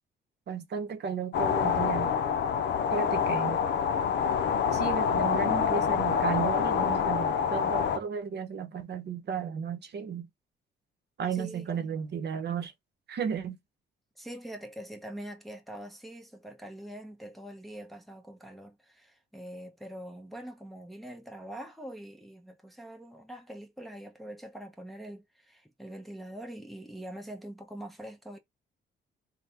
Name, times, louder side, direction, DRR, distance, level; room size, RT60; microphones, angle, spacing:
voice 1, 0.5-2.1 2.9-3.7 4.7-10.3 11.2-12.7 13.1-13.6, right 7 dB, 60° right, 0.9 m, -34 dB
sound 1, 1.3-8.0, left 7 dB, 60° left, 0.5 m, -26 dB
voice 2, 11.3-12.0 14.2-28.4, right 1 dB, ahead, 0.9 m, -44 dB
3.5 x 2.2 x 4.2 m
cardioid pair, 90°, 20 cm